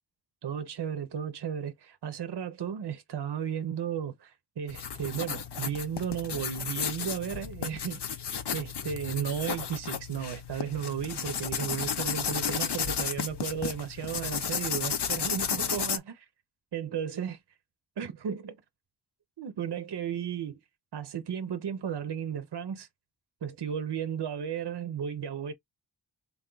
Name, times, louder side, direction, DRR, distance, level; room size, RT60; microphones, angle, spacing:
voice 1, 0.4-8.0 8.5-16.3 16.7-17.4 18.0-18.6 19.4-20.6 20.9-22.9 23.4-25.5, right 8 dB, 70° right, 0.7 m, -34 dB
sound 1, 4.7-16.0, left 7 dB, 65° left, 0.7 m, -33 dB
3.5 x 2.3 x 3.8 m
wide cardioid pair, 50°, 43 cm